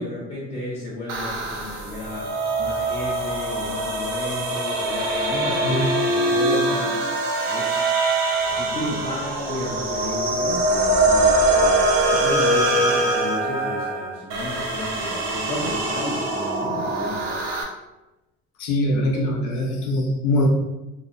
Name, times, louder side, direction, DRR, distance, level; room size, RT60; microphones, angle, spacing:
voice 1, 0.0-2.3 2.6-7.0 7.4-7.9 8.5-17.4, left 1 dB, 20° left, -7 dB, 0.4 m, -33 dB
sound 1, 1.1-17.6, right 2 dB, 60° right, 0.6 m, -23 dB
voice 2, 18.6-20.5, left 1 dB, 85° left, 0 dB, 0.7 m, -22 dB
2.8 x 2.0 x 2.4 m, 0.99 s
cardioid pair, 135°, 29 cm